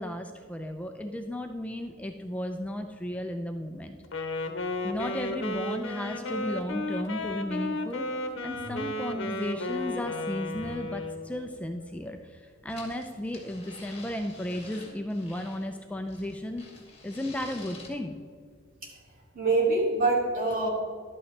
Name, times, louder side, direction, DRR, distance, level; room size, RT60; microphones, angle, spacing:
voice 1, 0.0-4.3 4.8-8.1 8.4-16.6 17.0-18.2, left 1 dB, 5° left, 4 dB, 0.4 m, -34 dB
Wind instrument woodwind instrument, 4.0-11.3, left 2 dB, 65° left, 0.9 m, -33 dB
sound 1, 12.7-15.7 16.1-17.9, left 3 dB, 30° left, 2.1 m, -48 dB
voice 2, 19.3-20.7, right 3 dB, 45° right, -2 dB, 2.5 m, -25 dB
11.5 x 8.5 x 3.2 m, 2.1 s
head